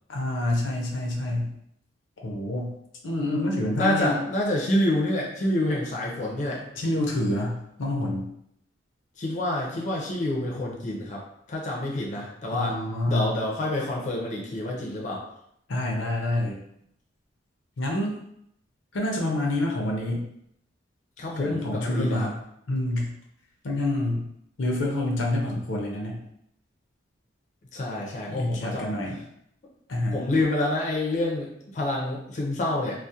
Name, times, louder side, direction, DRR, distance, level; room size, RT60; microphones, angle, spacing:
voice 1, 0.1-1.5 2.2-2.7 3.0-4.2 6.8-8.3 12.5-13.4 15.7-16.6 17.8-18.2 18.9-20.3 21.4-22.4 22.7-23.1 23.6-24.2 24.6-26.2 28.2-29.2 29.9-30.3, left 1 dB, 85° left, 0 dB, 0.6 m, -27 dB
voice 2, 3.8-6.6 9.2-11.2 11.5-12.8 13.1-15.2 21.2-22.3 27.7-29.0 30.1-33.1, left 1 dB, 40° left, -2 dB, 0.5 m, -27 dB
2.3 x 2.0 x 2.7 m, 0.73 s
head